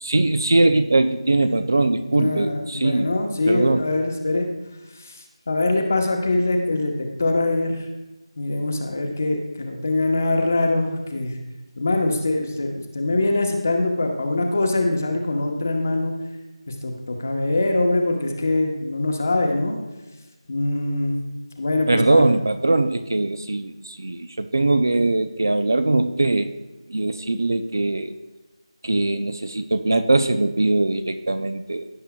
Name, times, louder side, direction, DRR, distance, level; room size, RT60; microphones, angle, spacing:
voice 1, 0.0-3.1 3.5-3.9 21.9-26.5 26.9-28.1 28.8-31.9, right 2 dB, 35° right, 10 dB, 0.4 m, -21 dB
voice 2, 2.1-4.5 5.0-5.2 5.5-7.9 8.4-11.3 11.8-16.1 16.7-19.8 20.5-21.1 21.6-22.2, left 2 dB, 25° left, 3 dB, 0.9 m, -23 dB
16.5 x 7.4 x 2.3 m, 1.1 s
figure-of-eight pair, 180°, 3 cm